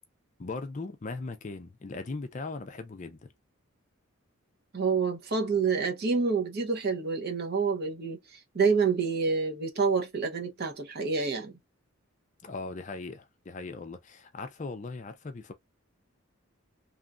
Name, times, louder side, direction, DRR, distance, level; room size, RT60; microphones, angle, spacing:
voice 1, 0.4-3.3 12.4-15.5, left 3 dB, 35° left, 0.4 m, -39 dB
voice 2, 4.7-11.5, right 5 dB, 45° right, 0.7 m, -28 dB
3.0 x 2.4 x 2.3 m
head